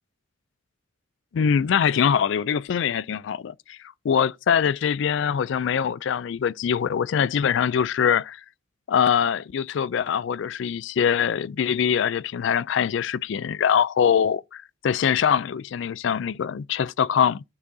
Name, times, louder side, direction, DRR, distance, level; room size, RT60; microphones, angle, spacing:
voice 1, 1.3-3.8 4.0-8.4 8.9-17.4, left 7 dB, 60° left, 0.3 m, -23 dB
12.5 x 4.5 x 2.7 m
head